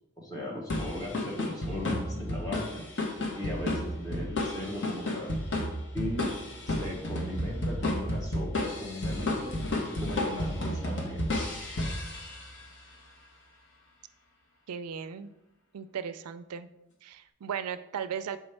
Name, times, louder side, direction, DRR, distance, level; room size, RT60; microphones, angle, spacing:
voice 1, 0.2-2.8 3.3-5.4 5.9-6.3 6.7-11.3, left 1 dB, 15° left, -2 dB, 1.0 m, -37 dB
sound 1, 0.7-12.6, left 1 dB, 55° left, 1.0 m, -32 dB
voice 2, 14.7-15.3 15.7-16.7 17.0-18.4, right 7 dB, 85° right, 12 dB, 0.4 m, -36 dB
7.0 x 4.6 x 3.3 m, 0.91 s
head